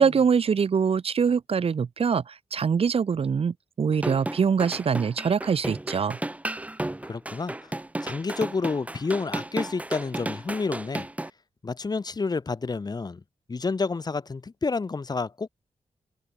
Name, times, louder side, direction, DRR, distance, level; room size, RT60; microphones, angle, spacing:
voice 1, 0.0-6.2, right 6 dB, 60° right, 1.6 m, -24 dB
sound 1, 3.9-11.3, right 1 dB, 10° right, 1.2 m, -33 dB
voice 2, 7.1-7.5 8.0-11.1 11.6-13.2 13.5-15.5, left 4 dB, 35° left, 1.5 m, -29 dB
wide cardioid pair, 90°, 11 cm